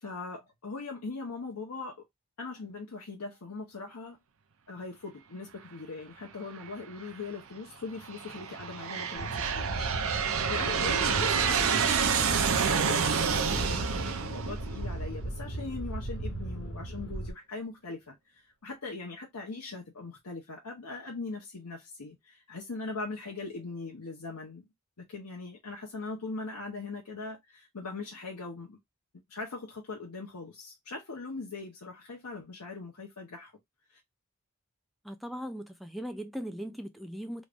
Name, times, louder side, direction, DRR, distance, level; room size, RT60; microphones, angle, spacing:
voice 1, 0.0-2.0 2.4-4.2 4.7-9.9 10.5-24.6 25.0-28.8 29.3-33.5 33.9-34.0, left 3 dB, 90° left, 0.9 m, -40 dB
Aircraft, 6.6-7.1 7.8-15.4, right 6 dB, 65° right, 0.6 m, -29 dB
sound 1, 9.2-17.3, right 1 dB, 55° left, 1.5 m, -36 dB
voice 2, 35.0-37.4, equal, ahead, 0.4 m, -39 dB
3.2 x 2.5 x 3.4 m
head